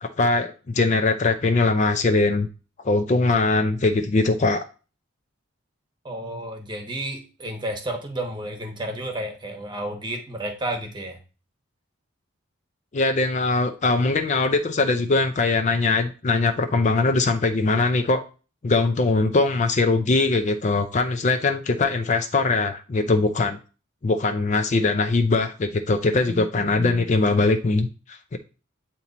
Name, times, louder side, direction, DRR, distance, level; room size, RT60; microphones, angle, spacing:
voice 1, 0.0-2.5 2.8-4.7 12.9-18.2 18.6-23.6 24.0-28.4, left 3 dB, 35° left, 7 dB, 0.4 m, -21 dB
voice 2, 6.0-11.2, right 1 dB, 20° right, 4 dB, 1.1 m, -31 dB
8.6 x 3.0 x 4.0 m, 0.34 s
head